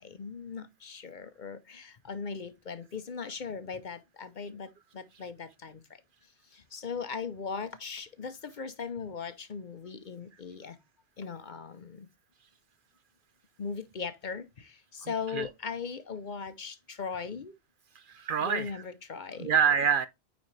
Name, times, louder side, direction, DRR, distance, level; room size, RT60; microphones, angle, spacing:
voice 1, 0.0-6.0 6.5-10.8 11.2-12.1 13.6-17.5 18.4-19.5, left 5 dB, 50° left, 0.8 m, -39 dB
voice 2, 15.0-15.5 18.1-18.8 19.4-20.1, right 7 dB, 60° right, 0.6 m, -27 dB
9.3 x 4.1 x 3.1 m
omnidirectional pair, 1.1 m